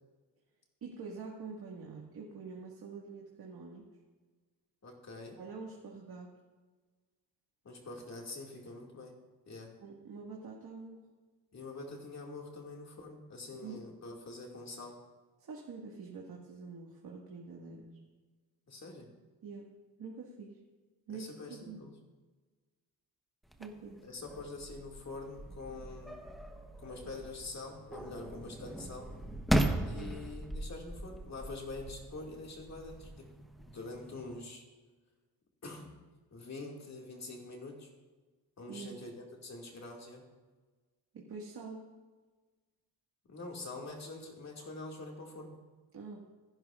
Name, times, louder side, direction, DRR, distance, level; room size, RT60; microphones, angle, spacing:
voice 1, 0.8-3.9 5.4-6.3 9.8-11.0 13.5-13.8 15.4-18.0 19.4-19.7 20.0-20.6 21.1-21.8 23.6-24.0 29.9-30.2 38.7-39.0 41.1-41.9 45.9-46.3, right 4 dB, 60° right, -3 dB, 1.9 m, -46 dB
voice 2, 4.8-5.4 7.6-9.1 9.5-9.7 11.5-15.0 18.7-19.1 21.1-21.9 24.0-26.2 26.8-29.1 29.9-33.3 33.7-34.6 35.6-35.9 36.3-37.9 38.6-40.2 43.3-45.6, left 2 dB, 40° left, -1 dB, 2.3 m, -45 dB
sound 1, 23.5-34.4, right 1 dB, ahead, 1.0 m, -38 dB
26.5 x 11.0 x 2.5 m, 1.3 s
wide cardioid pair, 135°, 41 cm